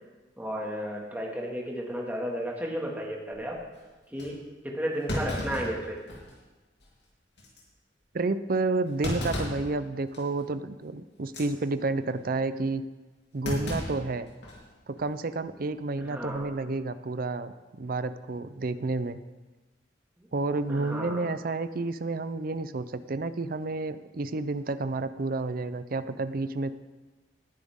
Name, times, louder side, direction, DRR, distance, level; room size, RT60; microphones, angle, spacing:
voice 1, 0.4-3.6 4.1-6.0 16.0-16.5 20.2-20.3 20.7-21.3, equal, 10° right, -2 dB, 2.1 m, -33 dB
Thump thud, 3.3-3.6 4.2-4.3 5.1-6.4 6.8-6.9 7.4-7.6 9.0-9.7 10.1-10.4 11.2-11.5 13.4-14.7 15.0-15.1 16.2-16.5, left 1 dB, 65° left, 3.3 m, -34 dB
voice 2, 8.1-12.8 13.3-14.3 14.9-19.2 20.3-26.8, right 3 dB, 50° right, 13 dB, 0.6 m, -30 dB
19.0 x 10.0 x 3.7 m, 1.2 s
head